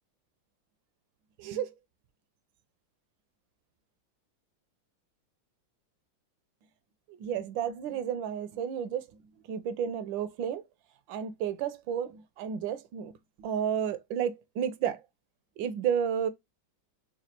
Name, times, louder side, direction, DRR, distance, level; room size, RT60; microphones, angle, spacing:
voice 1, 1.4-1.7 7.1-10.6 11.1-13.1 13.4-15.0 15.6-16.3, right 8 dB, 75° right, 1.3 m, -32 dB
5.2 x 2.4 x 2.9 m
omnidirectional pair, 2.2 m